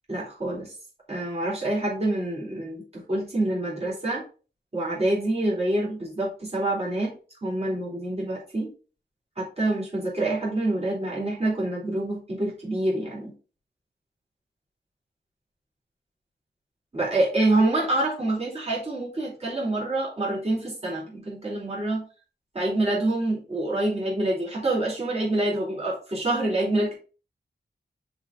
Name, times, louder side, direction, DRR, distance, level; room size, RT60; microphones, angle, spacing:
voice 1, 0.1-0.7 1.1-4.2 4.7-7.2 7.4-8.7 9.4-13.3 16.9-22.0 22.5-26.9, right 2 dB, 35° right, -4 dB, 3.8 m, -26 dB
5.9 x 4.3 x 4.8 m, 0.36 s
wide cardioid pair, 95°, 19 cm